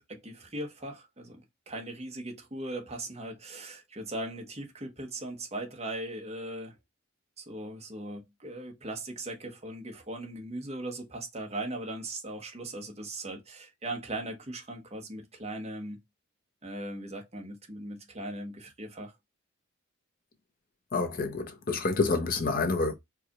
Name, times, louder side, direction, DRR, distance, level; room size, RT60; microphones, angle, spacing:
voice 1, 0.0-6.7 7.4-16.0 16.6-19.1, right 1 dB, 30° right, 1.1 m, -39 dB
voice 2, 20.9-22.9, left 3 dB, 45° left, 0.8 m, -28 dB
4.7 x 2.5 x 2.9 m
head